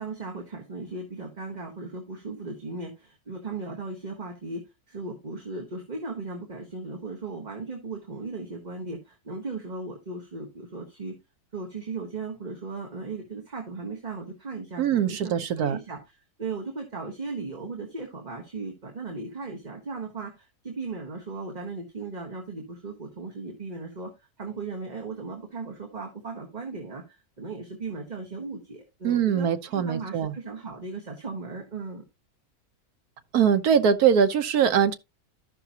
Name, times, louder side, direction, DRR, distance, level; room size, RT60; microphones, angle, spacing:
voice 1, 0.0-11.2 11.5-24.1 24.4-32.0, right 3 dB, 30° right, 1.4 m, -37 dB
voice 2, 14.8-15.8 29.0-30.3 33.3-34.9, right 7 dB, 75° right, 1.4 m, -22 dB
13.5 x 5.8 x 2.8 m
omnidirectional pair, 1.7 m